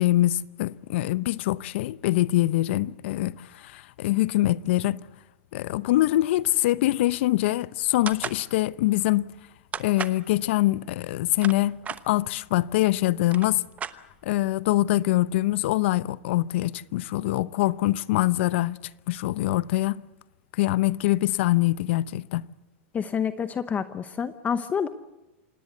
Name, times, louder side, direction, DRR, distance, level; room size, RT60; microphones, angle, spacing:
voice 1, 0.0-5.1 5.5-9.3 9.8-11.8 12.1-13.6 14.2-18.8 19.1-20.0 20.6-22.5, left 16 dB, 65° left, 0.7 m, -24 dB
sound 1, 8.1-8.4 9.7-10.2 11.1-12.0 12.9-13.0 13.2-14.4, right 7 dB, 20° right, 1.0 m, -34 dB
voice 2, 22.9-24.9, left 7 dB, 20° left, 0.9 m, -28 dB
26.5 x 18.5 x 8.2 m
hypercardioid pair, 120°, 7 cm